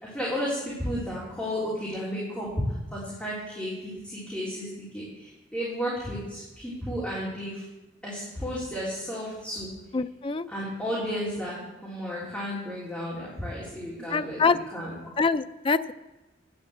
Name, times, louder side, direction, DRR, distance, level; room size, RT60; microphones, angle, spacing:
voice 1, 0.0-2.5 2.9-4.7 4.9-7.6 8.0-9.7 10.5-14.4 14.7-14.9, equal, 5° left, -8 dB, 3.2 m, -33 dB
voice 2, 9.9-10.5 14.1-14.6 15.2-15.9, left 4 dB, 30° left, 12 dB, 0.4 m, -25 dB
10.5 x 8.8 x 7.9 m, 1.0 s
head